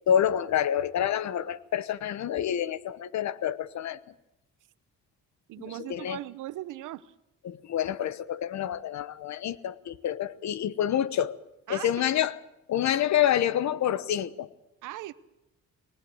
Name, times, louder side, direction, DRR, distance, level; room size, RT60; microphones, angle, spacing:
voice 1, 0.1-4.0 5.6-6.2 7.4-11.4 11.7-12.3 12.7-14.5, left 10 dB, 65° left, 17 dB, 1.1 m, -27 dB
voice 2, 5.5-7.1 11.7-11.9 14.8-15.1, right 15 dB, 85° right, 16 dB, 1.0 m, -38 dB
20.5 x 19.0 x 7.9 m, 0.91 s
cardioid pair, 90°, 30 cm